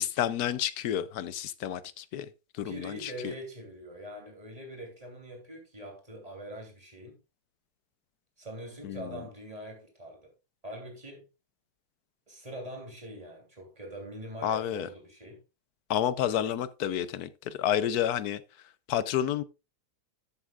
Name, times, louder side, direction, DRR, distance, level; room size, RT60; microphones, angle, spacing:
voice 1, 0.0-2.3 2.5-3.3 8.8-9.2 14.4-14.9 15.9-18.4 18.9-19.4, left 10 dB, 75° left, 1.2 m, -30 dB
voice 2, 2.6-7.2 8.4-10.3 10.6-11.3 12.3-15.4, right 1 dB, 20° right, 3.2 m, -43 dB
13.0 x 7.9 x 2.4 m
omnidirectional pair, 1.7 m